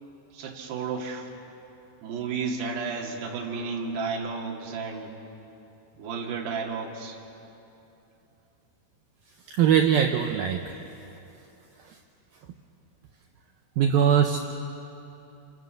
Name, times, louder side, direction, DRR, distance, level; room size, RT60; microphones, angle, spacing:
voice 1, 0.3-1.3 2.0-5.2 6.0-7.2, right 5 dB, 65° right, -1 dB, 4.3 m, -32 dB
voice 2, 9.5-10.8 11.9-12.0 13.8-14.4, right 8 dB, 85° right, 4 dB, 2.1 m, -21 dB
27.5 x 26.5 x 6.5 m, 2.9 s
omnidirectional pair, 5.4 m